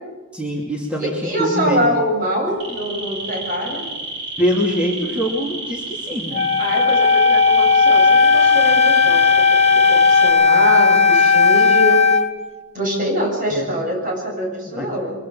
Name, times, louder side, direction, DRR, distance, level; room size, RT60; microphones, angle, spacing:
voice 1, 0.3-1.8 4.4-6.4 13.5-13.7 14.7-14.9, equal, 5° right, -3 dB, 2.7 m, -23 dB
voice 2, 1.0-3.8 6.6-9.4 9.7-12.0 12.7-15.1, equal, 40° right, 0 dB, 7.9 m, -24 dB
sound 1, 2.4-10.3, right 2 dB, 70° right, 5.9 m, -31 dB
Wind instrument woodwind instrument, 6.3-12.3, left 5 dB, 30° left, 1.0 m, -14 dB
24.0 x 23.0 x 5.7 m, 1.2 s
head